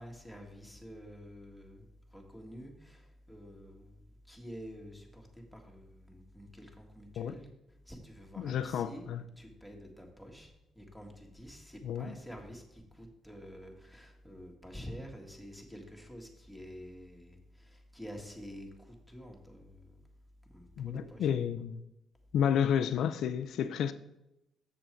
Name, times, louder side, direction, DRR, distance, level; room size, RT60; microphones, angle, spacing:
voice 1, 0.0-9.1 9.4-20.0 20.4-21.3, equal, ahead, 1.8 m, -49 dB
voice 2, 8.4-9.2 11.8-12.1 20.8-21.8 22.3-23.9, left 8 dB, 75° left, 0.4 m, -31 dB
7.1 x 6.8 x 4.5 m
cardioid pair, 90°, 0 cm